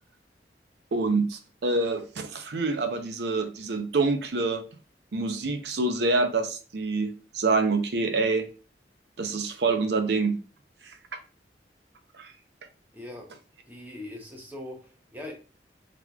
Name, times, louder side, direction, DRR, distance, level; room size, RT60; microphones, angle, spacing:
voice 1, 0.9-4.6 5.1-8.5 9.2-10.4 10.8-10.9 12.2-12.3, right 3 dB, 65° right, 7 dB, 0.6 m, -26 dB
voice 2, 12.9-13.3 13.6-15.3, left 1 dB, 10° right, 0 dB, 0.8 m, -41 dB
3.9 x 3.0 x 2.3 m, 0.35 s
head